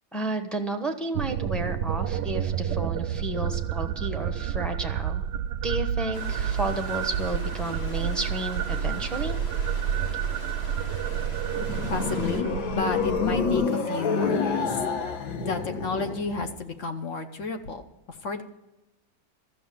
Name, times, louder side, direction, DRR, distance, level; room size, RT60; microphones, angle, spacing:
voice 1, 0.1-5.2 5.6-9.4, right 2 dB, ahead, 5 dB, 0.6 m, -32 dB
sound 1, 1.1-13.7, right 9 dB, 70° right, 1.1 m, -30 dB
sound 2, 6.1-12.4, left 1 dB, 20° left, 1.5 m, -41 dB
sound 3, 11.2-16.5, left 5 dB, 80° left, 1.9 m, -28 dB
voice 2, 11.9-14.8 15.4-18.4, left 4 dB, 50° left, 7 dB, 1.0 m, -32 dB
13.5 x 6.8 x 9.4 m, 1.0 s
omnidirectional pair, 2.1 m